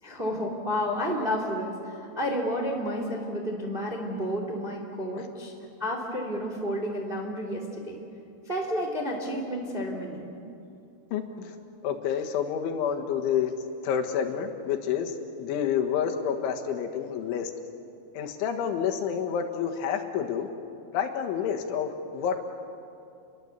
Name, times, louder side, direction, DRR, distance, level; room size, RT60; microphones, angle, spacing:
voice 1, 0.0-5.5 5.8-8.0 8.5-10.3, equal, 15° right, 1 dB, 1.9 m, -31 dB
voice 2, 11.1-11.6 11.8-13.5 13.8-17.5 18.2-20.5 20.9-22.5, left 8 dB, 80° left, 4 dB, 3.9 m, -29 dB
29.5 x 22.5 x 8.2 m, 2.6 s
omnidirectional pair, 5.6 m